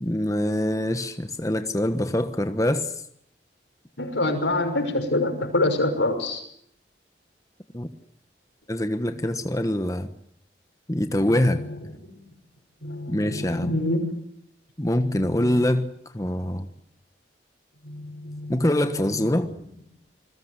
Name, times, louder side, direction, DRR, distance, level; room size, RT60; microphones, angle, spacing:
voice 1, 0.0-2.9 7.7-7.9 8.7-10.1 10.9-11.6 13.1-13.8 14.8-15.9 16.1-16.6 18.5-19.5, left 1 dB, 20° left, 1.3 m, -24 dB
voice 2, 4.0-6.4 12.8-14.0 15.0-15.5 17.9-18.7, left 2 dB, 90° left, 6.0 m, -26 dB
27.5 x 21.0 x 8.2 m
head